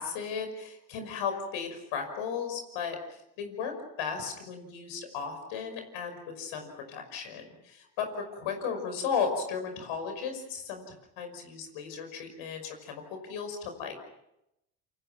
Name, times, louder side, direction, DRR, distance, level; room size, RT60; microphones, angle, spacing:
voice 1, 0.0-3.0 3.4-13.9, left 6 dB, 75° left, 6 dB, 5.9 m, -35 dB
28.5 x 27.0 x 6.0 m, 0.86 s
hypercardioid pair, 55°, 47 cm